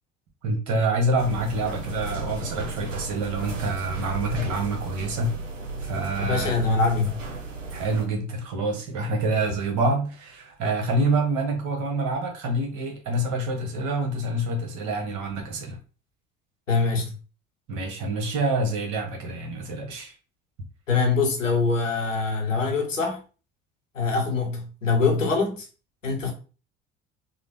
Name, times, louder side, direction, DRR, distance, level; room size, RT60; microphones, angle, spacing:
voice 1, 0.4-5.3 5.8-6.5 7.7-15.8 17.7-20.1, right 2 dB, 50° right, 1.1 m, -27 dB
sound 1, 1.2-8.1, right 3 dB, 85° right, 0.7 m, -34 dB
voice 2, 6.2-7.2 16.7-17.1 20.9-23.2 23.9-25.7 26.0-26.3, left 4 dB, 85° left, 0.8 m, -23 dB
3.7 x 2.0 x 3.4 m
figure-of-eight pair, 60°, 37 cm